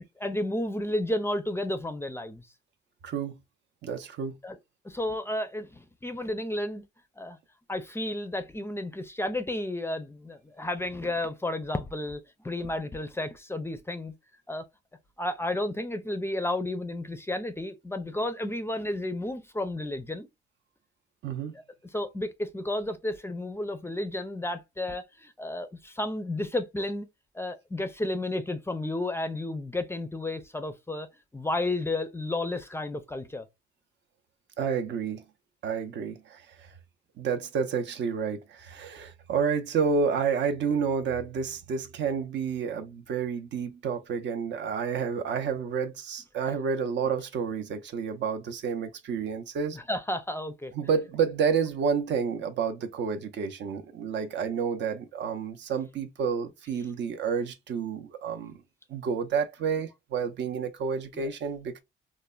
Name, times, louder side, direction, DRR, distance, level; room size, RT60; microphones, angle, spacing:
voice 1, 0.2-2.5 4.4-4.6 4.8-6.8 7.2-7.4 7.7-14.1 14.5-14.6 15.2-20.3 21.9-27.1 27.3-31.1 31.3-33.5 49.7-50.7 61.1-61.3, left 1 dB, 10° left, 0.4 m, -32 dB
voice 2, 3.0-3.4 3.8-4.4 21.2-21.6 34.6-35.2 35.6-36.7 37.2-49.8 50.7-58.6 58.9-61.8, right 6 dB, 65° right, 0.5 m, -30 dB
3.1 x 2.1 x 2.3 m
cardioid pair, 90°, 20 cm